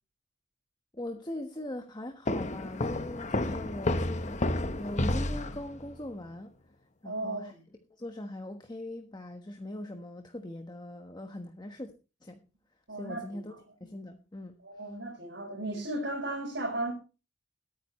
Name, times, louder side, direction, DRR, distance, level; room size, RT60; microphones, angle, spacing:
voice 1, 0.9-6.5 7.0-7.5 7.9-11.9 12.2-12.4 12.9-13.5 13.8-14.9, left 1 dB, 25° left, 1.3 m, -41 dB
sound 1, 2.3-5.9, left 1 dB, 40° left, 1.1 m, -31 dB
voice 2, 7.0-7.6 12.9-13.4 14.6-16.9, right 2 dB, 85° right, 5.4 m, -35 dB
21.5 x 9.3 x 3.2 m
head